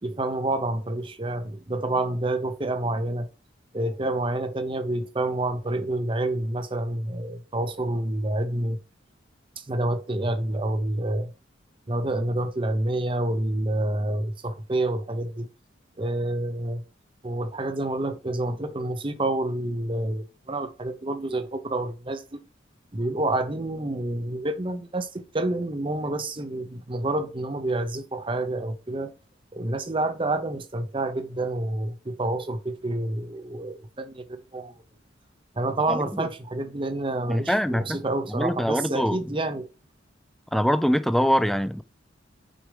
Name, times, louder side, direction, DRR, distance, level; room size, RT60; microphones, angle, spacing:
voice 1, 0.0-3.3 3.7-8.8 9.6-11.3 11.9-15.5 16.0-16.8 17.2-22.4 22.9-29.1 29.5-34.7 35.6-39.7, right 2 dB, 25° right, 0.7 m, -28 dB
voice 2, 35.9-36.3 37.3-38.0 38.3-39.2 40.5-41.8, equal, ahead, 0.4 m, -24 dB
6.3 x 5.0 x 4.9 m
head